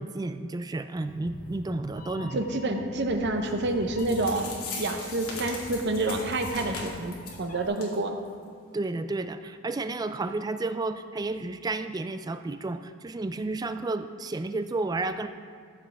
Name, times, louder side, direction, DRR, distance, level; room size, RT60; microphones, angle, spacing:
voice 1, 0.0-2.4 8.7-15.3, right 2 dB, 20° right, 10 dB, 0.3 m, -32 dB
Meow, 1.0-7.7, left 2 dB, 40° left, 0.7 m, -43 dB
voice 2, 2.3-4.5 4.8-8.1, right 2 dB, 55° right, 5 dB, 0.8 m, -28 dB
sound 1, 3.7-3.8 4.0-7.4 7.8-7.9 8.2-8.3 8.8-8.9, left 4 dB, 85° left, 2.3 m, -39 dB
13.5 x 7.5 x 3.4 m, 2.1 s
head